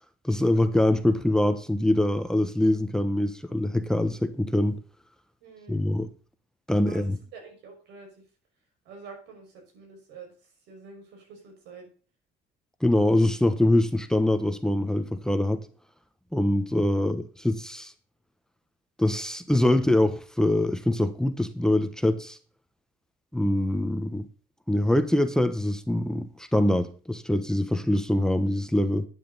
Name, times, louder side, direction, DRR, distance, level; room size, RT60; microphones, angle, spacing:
voice 1, 0.2-4.8 5.7-6.1 6.7-7.2 12.8-15.7 16.3-17.9 19.0-22.4 23.3-24.3 24.7-29.1, left 1 dB, 5° left, 1.1 m, -24 dB
voice 2, 5.4-5.8 6.8-8.2 8.8-11.9 16.7-17.0, right 5 dB, 85° right, 5.8 m, -47 dB
12.0 x 9.4 x 4.1 m
cardioid pair, 110°, 17 cm